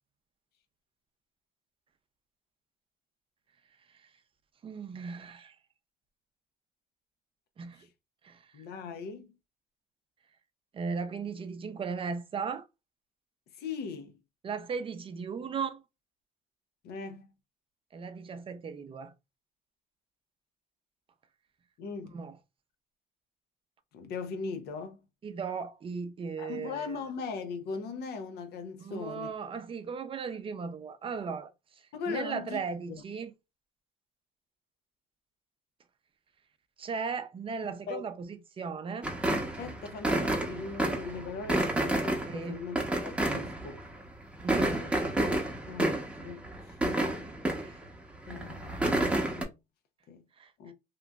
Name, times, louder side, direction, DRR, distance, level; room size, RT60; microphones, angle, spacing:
voice 1, 4.6-5.5 7.6-7.9 8.2-8.4 10.7-12.7 14.4-15.8 17.9-19.1 22.1-22.3 25.2-27.0 28.8-31.5 32.1-33.3 36.8-39.1 42.3-42.6 44.4-45.1 47.6-47.8 50.4-50.5, right 5 dB, 30° right, 0.5 m, -37 dB
voice 2, 8.5-9.3 13.6-14.1 16.8-17.3 21.8-22.2 23.9-25.0 26.4-29.3 31.9-32.6 32.9-33.0 37.6-38.0 39.3-42.8 43.0-43.8 44.4-44.9 45.2-46.4 46.8-47.3 48.3-48.9 49.3-49.5 50.1-50.2 50.6-50.7, left 5 dB, 75° left, 0.7 m, -39 dB
sound 1, 39.0-44.0 44.3-47.9 48.2-49.4, right 1 dB, 5° right, 0.8 m, -30 dB
2.9 x 2.5 x 2.3 m
cardioid pair, 110°, 17 cm